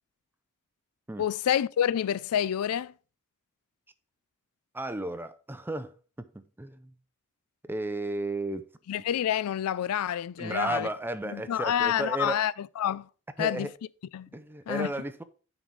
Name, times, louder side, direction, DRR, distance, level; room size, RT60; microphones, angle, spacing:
voice 1, 1.2-2.9 8.9-10.9 11.3-13.1 13.4-13.7 14.1-14.3 14.7-14.9, left 10 dB, 70° left, 0.3 m, -28 dB
voice 2, 4.7-6.9 7.7-8.7 10.4-12.4 13.4-13.7 14.3-15.2, right 1 dB, 10° right, 0.5 m, -34 dB
9.3 x 4.1 x 4.6 m
head